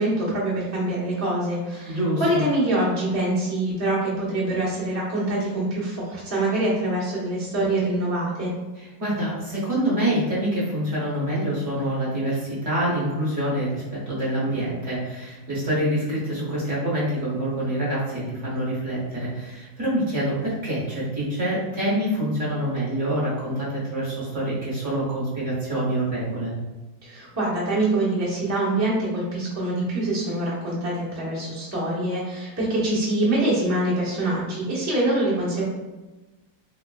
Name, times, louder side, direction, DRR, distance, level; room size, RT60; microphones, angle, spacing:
voice 1, 0.0-8.5 27.0-35.6, right 1 dB, 15° right, -8 dB, 0.6 m, -25 dB
voice 2, 1.9-2.4 8.8-26.5, right 1 dB, 45° right, -7 dB, 1.2 m, -26 dB
3.6 x 3.3 x 2.2 m, 1.1 s
omnidirectional pair, 2.0 m